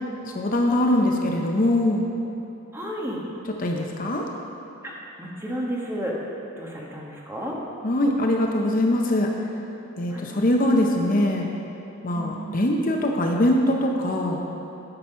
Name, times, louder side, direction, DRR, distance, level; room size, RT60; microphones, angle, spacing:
voice 1, 0.3-2.1 3.6-4.3 7.8-9.3 10.0-11.5 12.0-14.4, left 1 dB, 40° left, 1 dB, 0.7 m, -22 dB
voice 2, 2.7-3.2 4.8-4.9 5.2-6.1 6.6-7.6 10.1-10.3 12.1-12.5, equal, 10° right, -3 dB, 1.3 m, -32 dB
11.5 x 6.0 x 5.6 m, 2.9 s
head